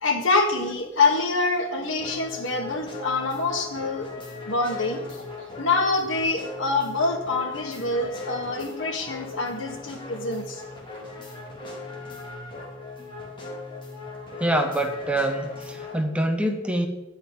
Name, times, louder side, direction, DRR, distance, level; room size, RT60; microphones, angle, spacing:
voice 1, 0.0-4.1 4.4-5.2 5.6-10.6, left 3 dB, 75° left, 1 dB, 2.2 m, -25 dB
sound 1, 2.0-16.0, left 3 dB, 25° left, 2.7 m, -39 dB
voice 2, 14.4-16.9, right 1 dB, 5° right, 4 dB, 1.1 m, -25 dB
11.5 x 5.6 x 8.8 m, 1.0 s
head